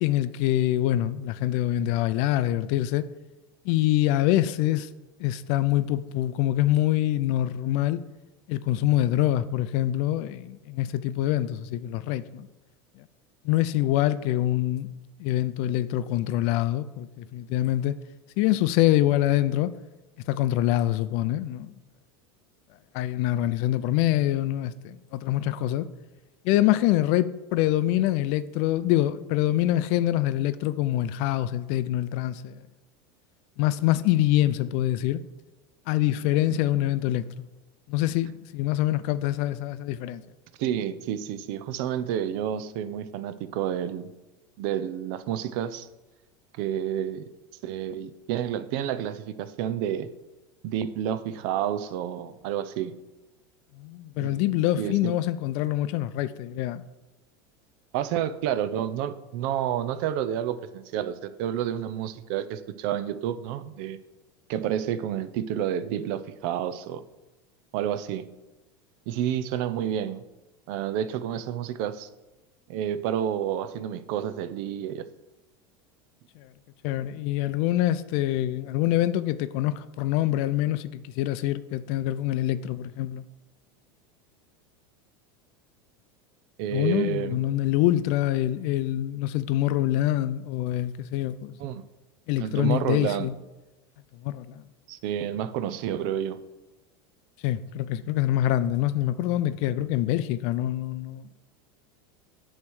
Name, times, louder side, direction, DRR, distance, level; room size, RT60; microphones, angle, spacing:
voice 1, 0.0-3.1 3.7-4.9 5.2-8.0 8.5-12.5 13.4-14.9 15.2-18.0 18.4-19.7 20.3-21.8 22.9-25.9 26.4-32.6 33.6-35.2 35.9-37.5 37.9-40.2 53.8-56.8 76.4-76.5 76.8-83.2 86.7-91.5 92.3-93.3 94.2-94.6 97.4-101.3, left 14 dB, 60° left, 0.4 m, -25 dB
voice 2, 40.6-44.1 44.6-45.9 46.6-47.2 47.6-50.1 50.6-52.9 54.2-55.1 57.9-64.0 64.5-67.0 67.7-68.3 69.1-70.2 70.7-72.1 72.7-75.1 86.6-87.4 91.6-91.8 92.4-93.3 94.9-96.4, right 10 dB, 60° right, 0.5 m, -30 dB
8.6 x 3.2 x 6.3 m
supercardioid pair, 110°, 13 cm